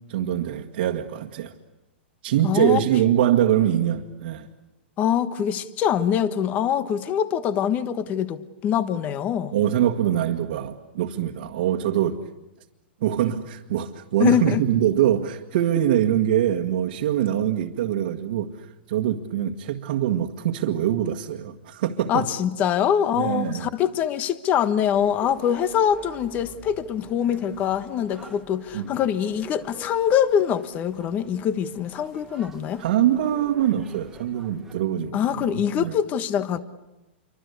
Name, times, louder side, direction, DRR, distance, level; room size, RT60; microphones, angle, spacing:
voice 1, 0.1-1.5 2.2-4.5 9.5-12.3 13.0-22.3 23.1-23.7 28.7-28.9 32.8-35.9, right 11 dB, 60° right, 1.8 m, -23 dB
voice 2, 2.4-2.8 5.0-9.5 14.2-14.6 22.1-32.8 35.1-36.6, left 9 dB, 25° left, 1.3 m, -24 dB
sound 1, 24.9-34.7, right 2 dB, 5° right, 2.0 m, -47 dB
28.0 x 24.5 x 8.3 m
hypercardioid pair, 155°, 6 cm